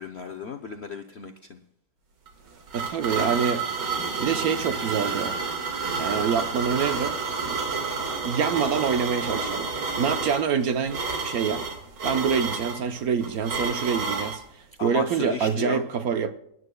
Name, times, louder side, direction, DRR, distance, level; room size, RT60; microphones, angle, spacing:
voice 1, 0.0-1.6 14.8-15.9, left 5 dB, 65° left, 0.6 m, -34 dB
sound 1, 2.3-14.4, right 4 dB, 90° right, 2.5 m, -30 dB
voice 2, 2.7-3.7 4.2-5.4 6.0-7.2 8.2-9.7 10.0-11.6 12.0-14.4 14.8-16.3, right 7 dB, 65° right, 1.1 m, -26 dB
24.0 x 11.0 x 2.2 m
omnidirectional pair, 1.9 m